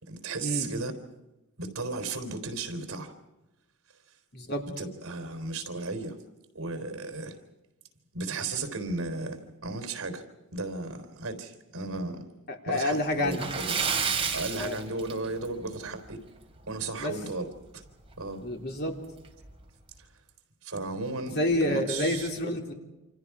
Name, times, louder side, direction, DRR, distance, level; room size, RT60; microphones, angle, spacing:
voice 1, 0.0-0.9 1.6-3.1 4.6-6.2 6.5-7.4 8.1-10.2 10.5-12.3 12.6-13.6 14.3-16.2 16.7-17.5 17.7-17.8 18.2-18.4 20.6-22.3, right 3 dB, 65° right, 3.8 m, -35 dB
voice 2, 4.3-4.6 12.6-13.4 14.5-14.8 17.0-17.1 18.4-18.9 21.3-22.7, left 1 dB, 50° left, 3.4 m, -28 dB
Splash splatter, 13.3-15.6 16.0-16.1 16.6-16.7 18.1-18.2 18.5-18.6 19.2-19.5, right 6 dB, 25° right, 3.1 m, -30 dB
28.5 x 27.5 x 4.9 m
head